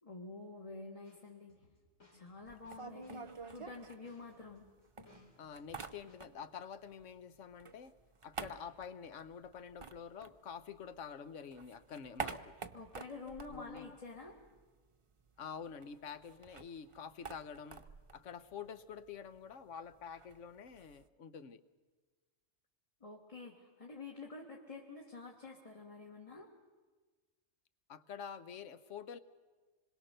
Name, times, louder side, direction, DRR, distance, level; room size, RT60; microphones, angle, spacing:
voice 1, 0.0-1.6 2.1-4.7 12.7-14.4 23.0-26.5, left 3 dB, 30° left, 0 dB, 1.7 m, -49 dB
sound 1, 1.0-6.2, left 3 dB, 70° left, 3.9 m, -66 dB
sound 2, 2.5-4.6 5.0-6.6 6.9-11.0 11.3-14.6 14.9-15.0 15.3-21.1, right 5 dB, 30° right, 0.7 m, -49 dB
voice 2, 5.4-7.9 8.2-12.6 13.5-14.0 15.4-17.8 18.1-21.6 27.9-29.2, left 7 dB, 85° left, 13 dB, 1.2 m, -48 dB
26.0 x 21.5 x 6.6 m, 1.4 s
omnidirectional pair, 1.2 m